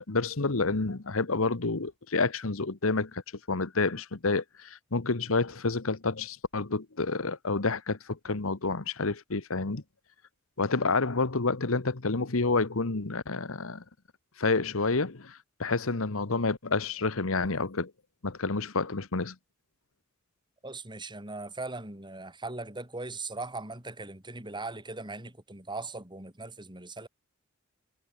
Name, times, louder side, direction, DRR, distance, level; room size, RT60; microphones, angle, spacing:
voice 1, 0.1-3.2 3.5-9.8 10.6-13.8 14.4-17.9 18.2-19.3, left 3 dB, 70° left, 1.3 m, -29 dB
voice 2, 20.6-27.1, right 3 dB, 20° right, 6.6 m, -39 dB
head